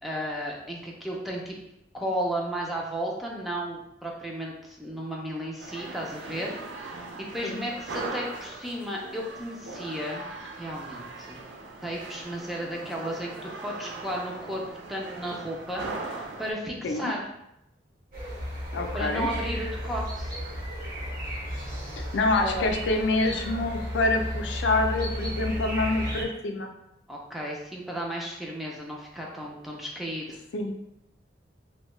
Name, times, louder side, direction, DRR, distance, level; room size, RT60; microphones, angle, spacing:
voice 1, 0.0-1.6 1.9-7.1 7.3-10.3 10.6-11.4 11.8-14.6 14.9-17.3 18.9-20.3 22.4-22.7 27.1-30.4, equal, ahead, -3 dB, 0.4 m, -34 dB
sound 1, 5.6-16.5, right 3 dB, 70° right, 0.4 m, -39 dB
sound 2, 18.1-26.2, equal, 55° right, 0.9 m, -33 dB
voice 2, 18.7-19.3 22.1-26.7 30.5-30.7, left 2 dB, 75° left, 4 dB, 0.4 m, -26 dB
2.7 x 2.1 x 3.0 m, 0.85 s
head